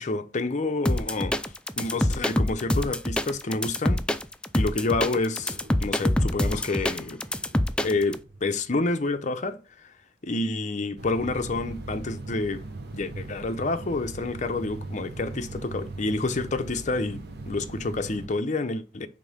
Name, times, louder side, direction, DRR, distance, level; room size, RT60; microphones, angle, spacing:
voice 1, 0.0-1.4 1.8-4.1 4.5-7.2 7.8-9.6 10.2-12.7 12.9-19.1, left 3 dB, 45° left, 0.6 m, -28 dB
sound 1, 0.8-8.2, left 1 dB, 5° left, 0.3 m, -25 dB
sound 2, 5.0-10.2, right 1 dB, 35° right, 1.2 m, -52 dB
sound 3, 11.0-18.3, right 2 dB, 65° right, 1.0 m, -39 dB
5.3 x 3.6 x 5.4 m
head